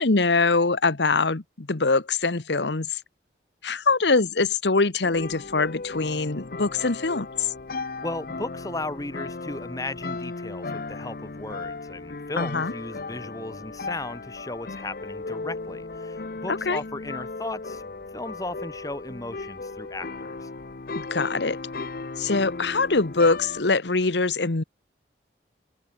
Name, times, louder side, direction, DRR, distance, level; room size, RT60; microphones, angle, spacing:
voice 1, 0.0-3.0 3.6-7.5 12.4-12.7 16.5-16.8 20.9-21.6 22.2-24.6, left 3 dB, 75° left, 1.2 m, -23 dB
sound 1, 5.0-23.6, left 3 dB, 55° left, 0.8 m, -36 dB
voice 2, 8.0-17.8 18.1-20.5, left 2 dB, 20° left, 1.3 m, -36 dB
head